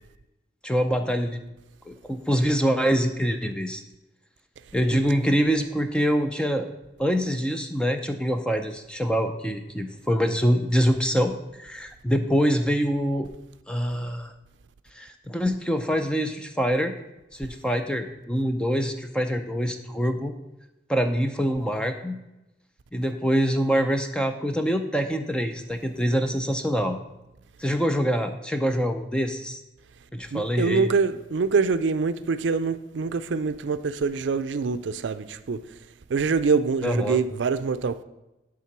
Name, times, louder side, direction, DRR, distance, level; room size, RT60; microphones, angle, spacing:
voice 1, 0.6-1.4 1.9-3.8 4.7-6.7 7.0-13.3 13.7-14.3 14.9-16.9 17.3-20.3 20.9-22.2 22.9-27.0 27.6-29.6 30.1-30.9 36.8-37.2, equal, 5° left, 0.5 m, -25 dB
voice 2, 30.3-35.6 36.1-38.0, right 5 dB, 75° right, 0.4 m, -25 dB
10.0 x 3.7 x 5.9 m
head